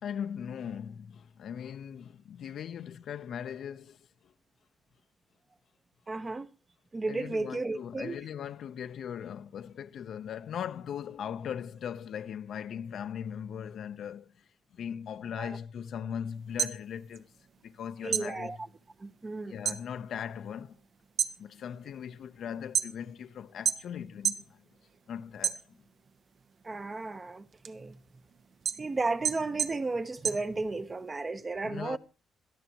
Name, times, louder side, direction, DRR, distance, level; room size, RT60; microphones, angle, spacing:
voice 1, 0.0-4.3 7.1-14.4 14.7-17.3 17.6-18.6 19.5-20.8 21.4-24.6 25.1-25.8 31.6-32.0, left 8 dB, 65° left, 0.8 m, -39 dB
voice 2, 6.1-6.5 6.9-8.2 15.4-15.6 18.0-18.6 19.0-19.6 26.6-28.0 28.8-32.0, right 3 dB, 25° right, 1.0 m, -34 dB
sound 1, 16.4-17.8 18.1-19.9 20.2-20.7 21.0-23.2 23.6-24.5 24.9-26.1 26.5-31.1, right 8 dB, 55° right, 1.0 m, -32 dB
22.0 x 13.5 x 3.0 m
cardioid pair, 90°, 0 cm